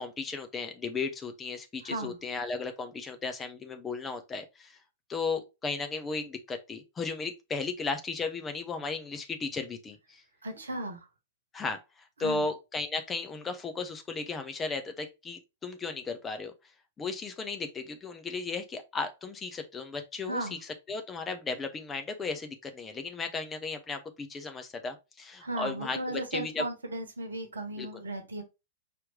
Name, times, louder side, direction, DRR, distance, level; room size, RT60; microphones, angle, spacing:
voice 1, 0.0-4.8 5.1-10.2 11.5-16.5 17.0-20.5 20.9-26.6 27.8-27.9, left 4 dB, 15° left, 0.6 m, -35 dB
voice 2, 1.8-2.2 10.4-11.1 12.2-12.5 20.2-20.6 25.4-28.4, right 1 dB, 70° right, 1.0 m, -36 dB
5.0 x 3.0 x 3.1 m
figure-of-eight pair, 100°, 0 cm